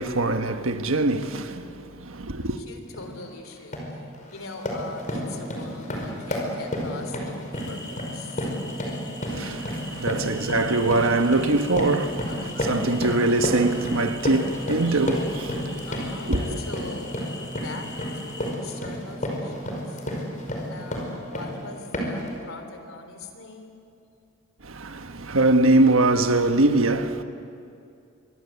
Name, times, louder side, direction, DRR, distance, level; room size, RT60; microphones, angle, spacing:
voice 1, 0.0-2.6 9.3-15.9 16.2-16.6 24.6-27.2, right 2 dB, 75° right, 1.4 m, -23 dB
voice 2, 2.6-3.8 4.3-8.5 12.3-12.6 15.9-17.2 17.6-20.0 20.7-23.8, left 3 dB, 80° left, 3.5 m, -42 dB
sound 1, 2.9-3.1 3.5-3.9 4.3-21.6 21.9-22.3, equal, 40° left, 5.4 m, -31 dB
sound 2, 7.5-18.5, left 2 dB, 20° left, 2.7 m, -42 dB
25.5 x 23.0 x 8.4 m
head